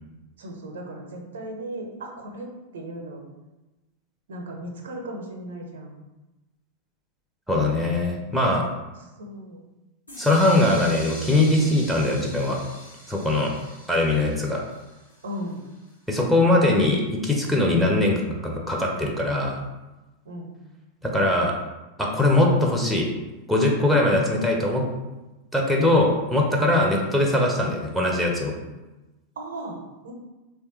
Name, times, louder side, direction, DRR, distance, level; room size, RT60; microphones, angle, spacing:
voice 1, 0.4-3.2 4.3-6.0 9.0-9.6 15.2-15.8 20.2-20.6 26.8-27.0 29.4-30.1, right 1 dB, 65° right, 2 dB, 0.5 m, -36 dB
voice 2, 7.5-8.7 10.2-12.6 13.1-13.5 13.9-14.6 16.1-19.6 21.0-21.5 22.0-23.1 23.5-24.9 25.5-28.5, left 1 dB, ahead, -1 dB, 0.5 m, -21 dB
sound 1, 10.1-15.9, left 1 dB, 85° left, 0.9 m, -43 dB
3.1 x 2.3 x 3.0 m, 1.1 s
figure-of-eight pair, 90°, 0 cm